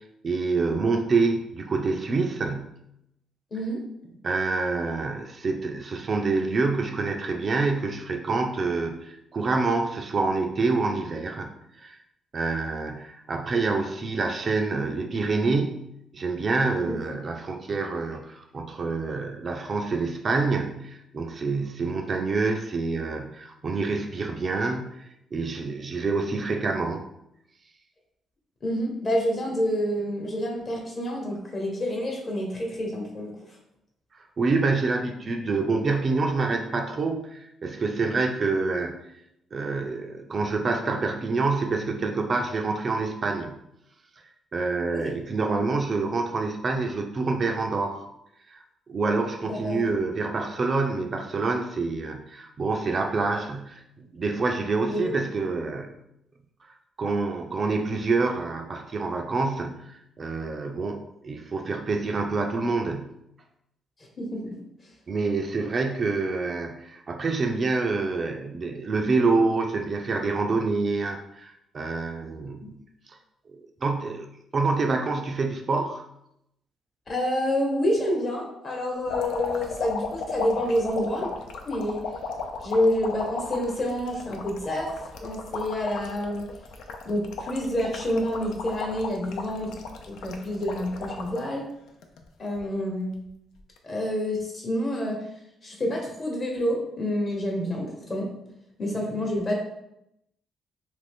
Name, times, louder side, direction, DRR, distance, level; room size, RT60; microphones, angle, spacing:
voice 1, 0.2-2.8 4.2-11.5 11.8-12.0 12.3-25.0 25.3-27.1 34.4-38.9 39.5-43.5 44.5-48.1 48.5-48.6 48.9-56.0 56.6-63.2 65.1-72.8 73.1-73.2 73.5-74.3 74.5-76.0, right 3 dB, 40° right, 3 dB, 0.4 m, -27 dB
voice 2, 28.6-33.3 44.9-45.0 49.4-49.8 54.9-55.1 64.2-64.6 72.6-72.7 77.1-81.3 81.6-82.0 82.6-84.9 85.2-86.5 87.0-89.7 90.1-91.6 92.4-93.1 93.8-95.2 95.6-98.3 98.8-99.5, left 1 dB, 40° left, -1 dB, 1.0 m, -28 dB
sound 1, 79.1-91.4 91.9-92.6 93.6-93.8, left 4 dB, 85° left, 0.4 m, -35 dB
2.9 x 2.5 x 3.5 m, 0.81 s
cardioid pair, 90°, 0 cm